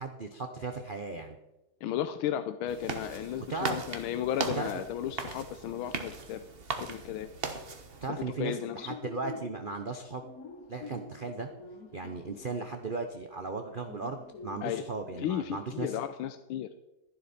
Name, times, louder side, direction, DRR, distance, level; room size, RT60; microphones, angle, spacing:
voice 1, 0.0-1.4 3.5-3.8 4.6-4.8 8.0-10.2 10.7-11.5 11.9-16.0, right 3 dB, 75° right, 5 dB, 0.4 m, -36 dB
voice 2, 1.8-6.4 6.8-7.3 8.4-8.9 14.6-14.8 15.2-16.7, left 10 dB, 85° left, 9 dB, 1.5 m, -34 dB
sound 1, 2.7-8.1, right 4 dB, 35° right, 1.0 m, -38 dB
sound 2, 5.6-7.9 8.3-15.2, left 3 dB, 50° left, 1.4 m, -47 dB
13.0 x 11.5 x 4.3 m, 0.98 s
omnidirectional pair, 2.3 m